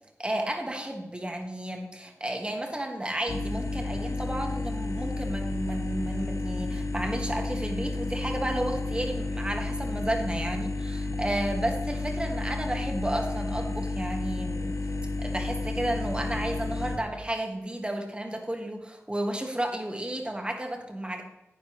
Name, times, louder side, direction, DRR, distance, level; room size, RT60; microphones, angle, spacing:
voice 1, 0.2-14.8 15.2-21.2, right 1 dB, 20° right, 2 dB, 1.7 m, -32 dB
sound 1, 3.3-17.0, left 2 dB, 80° left, 0.9 m, -31 dB
11.0 x 9.9 x 3.2 m, 0.97 s
wide cardioid pair, 80°, 5 cm